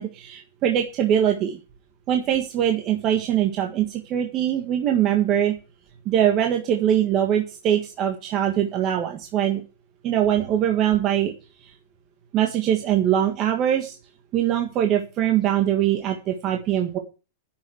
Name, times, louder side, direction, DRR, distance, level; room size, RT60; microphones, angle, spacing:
voice 1, 0.0-1.6 2.1-5.6 6.0-9.6 10.0-11.3 11.6-11.7 12.3-14.0 14.3-17.0, right 10 dB, 25° right, 3 dB, 1.6 m, -22 dB
10.5 x 7.0 x 8.0 m, 0.31 s
supercardioid pair, 170°, 0 cm